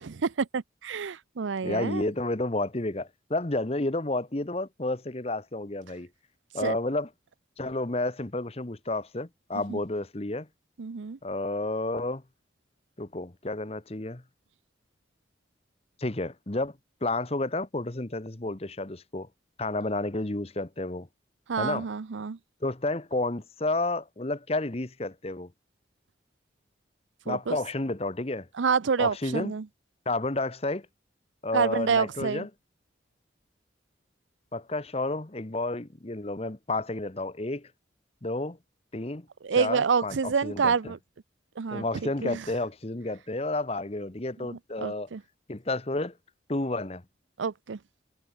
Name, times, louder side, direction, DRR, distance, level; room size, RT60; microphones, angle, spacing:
voice 1, 0.0-2.1 6.6-6.7 9.7-9.8 10.8-11.2 21.5-22.4 27.3-27.6 28.6-29.7 31.5-32.4 39.4-41.0 41.6-42.4 44.5-45.2 47.4-47.8, right 5 dB, 85° right, 0.6 m, -28 dB
voice 2, 1.6-6.1 6.5-7.1 7.6-10.5 11.2-12.2 13.0-14.2 16.0-19.3 19.6-21.1 21.6-21.9 22.6-25.5 27.2-28.5 29.0-29.5 30.1-30.9 31.4-32.5 34.5-37.7 38.2-38.6 38.9-39.3 39.6-40.9 41.7-45.1 45.5-46.1 46.5-47.0, left 2 dB, 35° left, 1.1 m, -31 dB
head